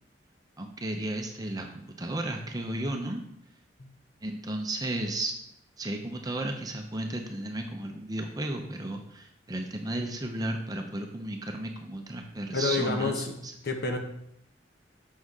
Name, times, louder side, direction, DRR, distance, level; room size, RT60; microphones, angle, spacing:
voice 1, 0.6-3.2 4.2-5.4 5.8-13.5, right 1 dB, 20° right, 3 dB, 0.6 m, -34 dB
voice 2, 12.5-13.4 13.6-14.0, left 3 dB, 60° left, 4 dB, 0.9 m, -28 dB
6.3 x 4.1 x 4.7 m, 0.73 s
head